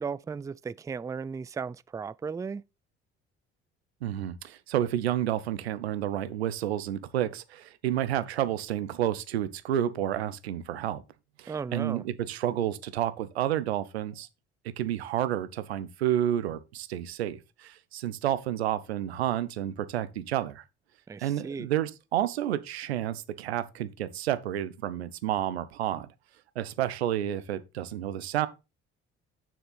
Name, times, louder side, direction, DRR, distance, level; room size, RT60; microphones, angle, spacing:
voice 1, 0.0-2.6 11.5-12.0 21.1-21.7, right 5 dB, 10° right, 0.3 m, -35 dB
voice 2, 4.0-11.0 11.4-14.3 14.8-20.6 21.2-26.1 26.6-28.5, right 11 dB, 90° right, 0.7 m, -30 dB
6.8 x 6.0 x 4.0 m
hypercardioid pair, 55°, 31 cm